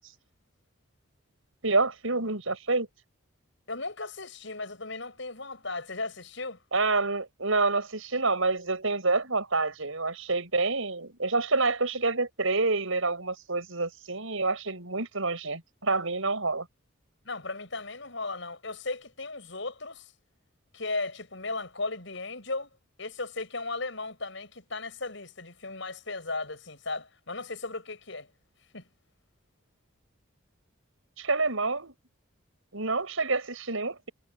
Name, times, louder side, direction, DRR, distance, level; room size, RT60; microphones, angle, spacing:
voice 1, 1.6-2.9 6.7-16.7 31.2-31.9 32.7-34.1, right 3 dB, 90° right, 7.3 m, -28 dB
voice 2, 3.7-6.6 17.2-20.1 20.7-22.7 23.0-28.3 28.7-28.8, left 3 dB, 65° left, 6.6 m, -36 dB
head